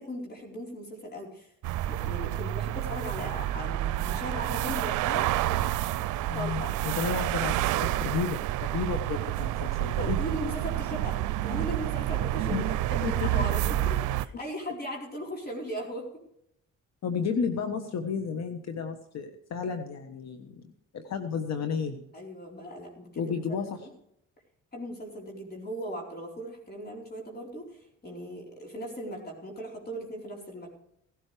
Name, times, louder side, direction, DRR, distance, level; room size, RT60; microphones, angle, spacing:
voice 1, 0.0-1.5 1.9-5.6 6.3-6.7 10.0-16.1 22.1-23.9 24.7-27.7 28.0-30.7, equal, 30° left, -1 dB, 4.2 m, -38 dB
sound 1, 1.6-14.3, right 14 dB, 85° right, 0.6 m, -29 dB
voice 2, 6.3-10.2 12.5-12.7 13.0-13.3 17.0-20.6 20.9-22.0 23.2-23.9, left 6 dB, 60° left, 7 dB, 1.3 m, -32 dB
17.0 x 12.5 x 3.4 m, 0.74 s
cardioid pair, 90°, 30 cm